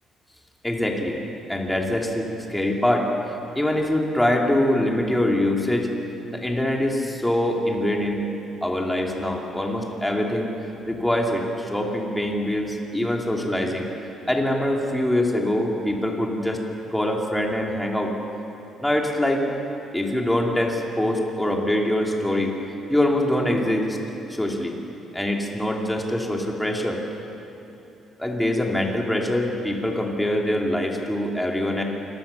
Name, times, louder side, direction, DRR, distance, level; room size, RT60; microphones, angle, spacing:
voice 1, 0.6-1.2 1.5-3.1 3.5-5.9 6.3-8.3 8.6-10.5 10.9-13.9 14.3-16.6 16.9-18.1 18.8-19.4 19.9-22.5 22.9-24.0 24.3-24.7 25.1-27.0 28.2-31.8, left 1 dB, 5° left, 0 dB, 3.2 m, -24 dB
28.0 x 22.5 x 7.1 m, 3.0 s
cardioid pair, 140°, 0 cm